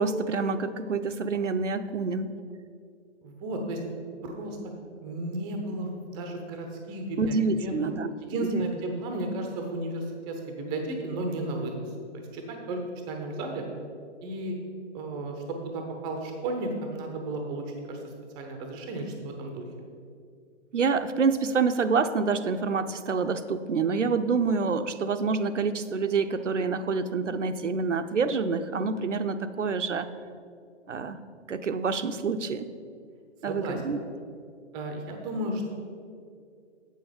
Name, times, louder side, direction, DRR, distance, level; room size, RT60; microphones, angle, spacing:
voice 1, 0.0-2.3 7.2-8.1 8.4-8.7 20.7-30.1 30.9-31.2 31.5-32.7 33.4-34.0, right 4 dB, 85° right, 10 dB, 0.6 m, -27 dB
voice 2, 3.2-3.8 4.2-4.6 5.0-7.7 8.2-11.8 12.3-12.8 13.1-13.6 14.2-14.5 14.9-18.0 18.4-19.6 33.5-33.8 34.7-35.7, right 1 dB, 10° right, 4 dB, 0.6 m, -33 dB
8.1 x 6.4 x 5.0 m, 2.3 s
figure-of-eight pair, 130°, 35 cm